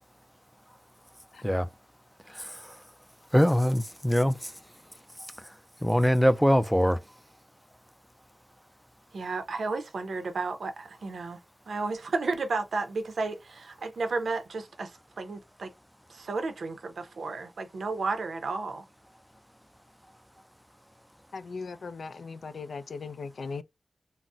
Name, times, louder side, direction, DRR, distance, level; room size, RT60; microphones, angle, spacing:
voice 1, 3.3-4.4 5.8-7.0, equal, ahead, 0.3 m, -22 dB
voice 2, 9.1-11.4 11.7-14.9 15.2-15.7 16.1-18.8, right 3 dB, 90° right, 0.6 m, -32 dB
voice 3, 21.3-23.6, left 4 dB, 80° left, 0.3 m, -38 dB
3.9 x 2.0 x 2.3 m
wide cardioid pair, 110°, 0 cm